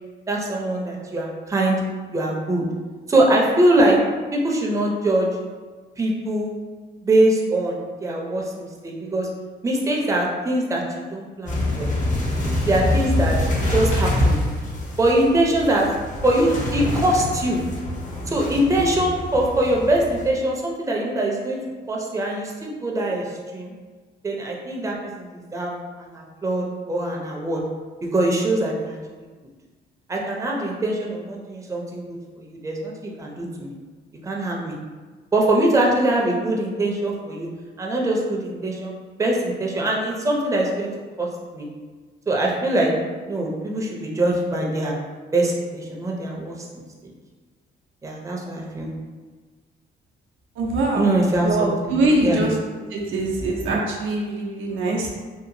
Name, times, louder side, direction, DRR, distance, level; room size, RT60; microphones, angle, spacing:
voice 1, 0.3-1.8 2.1-2.7 3.1-4.0 4.3-5.3 6.0-6.5 7.0-9.3 9.6-11.9 12.6-14.4 15.0-15.9 16.2-17.6 18.3-21.6 21.9-23.7 24.2-25.7 26.0-27.6 28.1-29.0 30.1-33.7 34.2-34.8 35.3-37.5 37.8-38.9 39.2-40.9 41.2-41.7 42.3-42.9 43.2-44.9 45.3-46.8 48.0-48.9 50.9-51.9 52.2-52.5, right 1 dB, 15° right, -2 dB, 0.5 m, -22 dB
sound 1, 11.5-20.3, left 1 dB, 40° left, 0.7 m, -26 dB
voice 2, 50.6-51.0 51.4-52.5 52.9-55.1, right 2 dB, 85° right, -1 dB, 0.6 m, -23 dB
2.8 x 2.3 x 2.6 m, 1.4 s
cardioid pair, 90°, 20 cm